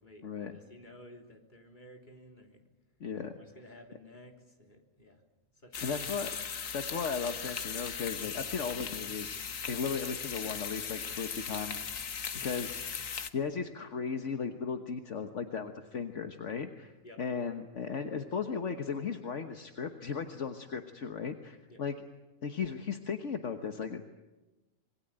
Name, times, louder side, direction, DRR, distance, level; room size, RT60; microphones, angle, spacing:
voice 1, 0.0-2.6 3.4-5.2 5.5-6.0 12.3-12.6 17.0-17.2 21.7-21.8, left 1 dB, 35° left, 3 dB, 3.6 m, -54 dB
voice 2, 3.0-3.4 5.8-6.4 6.7-11.8 12.3-16.9 17.2-21.9 22.4-24.0, left 6 dB, 65° left, 6 dB, 1.6 m, -36 dB
sound 1, 5.7-13.3, left 6 dB, 90° left, 1.7 m, -38 dB
26.5 x 22.0 x 8.9 m, 1.1 s
omnidirectional pair, 1.3 m